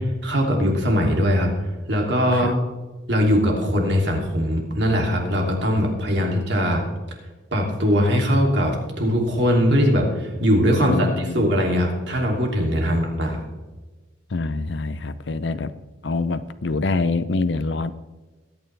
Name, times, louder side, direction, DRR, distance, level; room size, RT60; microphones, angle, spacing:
voice 1, 0.0-1.5 1.9-2.6 3.1-6.8 7.5-13.4, equal, 60° right, 0 dB, 2.9 m, -21 dB
voice 2, 10.7-11.6 12.9-13.0 14.3-15.7 16.0-17.9, left 3 dB, 65° left, 13 dB, 0.6 m, -25 dB
22.0 x 9.2 x 3.4 m, 1.2 s
head